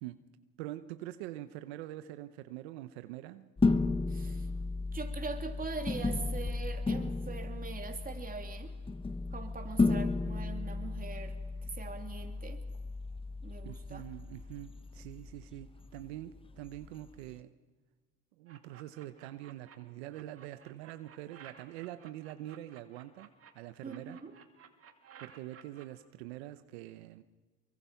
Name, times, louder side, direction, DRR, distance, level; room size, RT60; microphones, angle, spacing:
voice 1, 0.6-3.5 13.6-17.5 18.4-23.3 23.5-24.2 25.2-27.2, right 14 dB, 90° right, 11 dB, 0.9 m, -44 dB
sound 1, 3.6-17.3, left 3 dB, 15° left, 1.2 m, -34 dB
voice 2, 4.1-4.5 4.9-8.7 9.3-11.3 11.6-12.6 13.4-14.0 23.8-24.3, right 4 dB, 30° right, 4 dB, 3.0 m, -42 dB
sound 2, 18.5-19.8 20.1-23.5 23.9-25.9, right 8 dB, 45° right, 2.5 m, -55 dB
24.0 x 23.0 x 5.8 m, 1.4 s
supercardioid pair, 80°, 31 cm